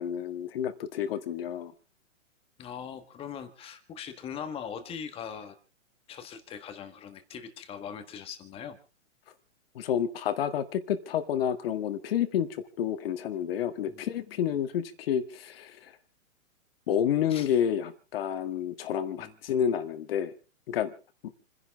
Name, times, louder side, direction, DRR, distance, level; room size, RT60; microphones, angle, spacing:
voice 1, 0.0-1.7 9.8-15.9 16.9-20.3 20.7-20.9, left 9 dB, 45° left, 9 dB, 1.7 m, -29 dB
voice 2, 2.6-5.6 6.1-8.8 13.8-14.1 17.3-17.5 19.2-19.4, left 7 dB, 15° left, 8 dB, 1.5 m, -41 dB
28.5 x 11.0 x 3.6 m, 0.35 s
hypercardioid pair, 155°, 40 cm